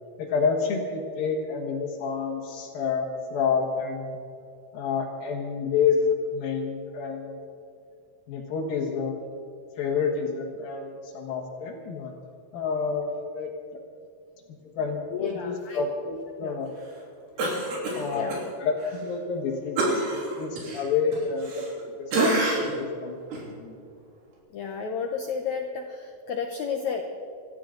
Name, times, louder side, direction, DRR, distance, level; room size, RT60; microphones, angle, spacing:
voice 1, 0.2-4.2 4.7-7.4 8.3-9.3 9.8-12.1 12.5-13.5 14.8-16.7 17.9-23.2 23.6-23.8, left 5 dB, 65° left, -3 dB, 3.2 m, -29 dB
voice 2, 15.2-15.8 16.4-16.6 17.4-17.6 18.1-18.4 24.5-27.0, left 6 dB, 85° left, 4 dB, 1.6 m, -32 dB
Cough, 17.4-18.4 18.8-19.0 19.8-21.8 22.1-22.8 23.3-23.5, right 2 dB, 80° right, 5.5 m, -27 dB
26.5 x 13.5 x 3.9 m, 2.5 s
omnidirectional pair, 4.6 m